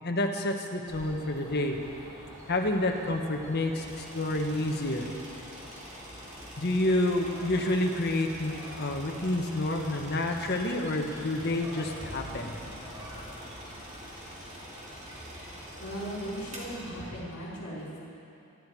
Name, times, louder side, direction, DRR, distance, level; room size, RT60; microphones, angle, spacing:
voice 1, 0.0-1.8 2.5-5.1 6.6-12.6, left 1 dB, 45° left, 3 dB, 1.4 m, -29 dB
sound 1, 0.9-17.1, equal, 15° right, 2.9 m, -46 dB
sound 2, 3.8-17.0, right 1 dB, 35° right, 3.3 m, -48 dB
voice 2, 15.8-18.0, equal, 65° left, -6 dB, 4.2 m, -37 dB
25.5 x 12.0 x 4.8 m, 2.7 s
head